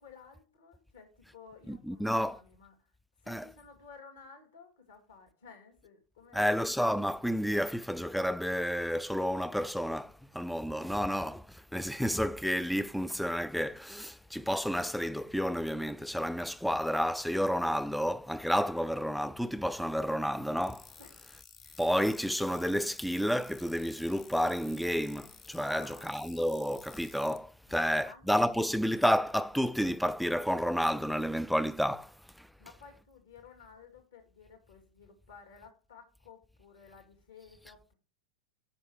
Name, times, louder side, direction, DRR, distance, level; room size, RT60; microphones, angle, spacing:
voice 1, 0.0-2.9 3.2-6.5 21.0-21.1 25.7-26.3 27.7-28.5 32.6-38.0, left 5 dB, 60° left, 2.2 m, -54 dB
voice 2, 1.7-2.4 3.3-3.4 6.3-20.9 21.8-32.5, equal, ahead, 0.3 m, -30 dB
sound 1, 20.6-27.4, left 6 dB, 30° left, 0.9 m, -54 dB
7.8 x 5.7 x 4.7 m
figure-of-eight pair, 90°, 0 cm